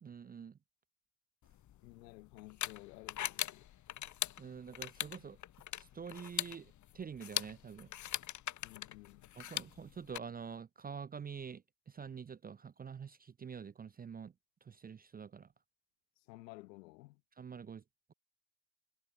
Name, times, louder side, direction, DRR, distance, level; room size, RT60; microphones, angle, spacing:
voice 1, 0.0-0.6 4.4-5.4 5.7-7.9 9.4-14.3 14.6-15.5 17.4-17.8, right 6 dB, 20° right, 0.5 m, -47 dB
sound 1, 1.5-10.2, left 12 dB, 35° left, 0.8 m, -41 dB
voice 2, 1.8-3.7 8.6-9.3 16.3-17.2, left 21 dB, 85° left, 2.2 m, -54 dB
hypercardioid pair, 70°, 49 cm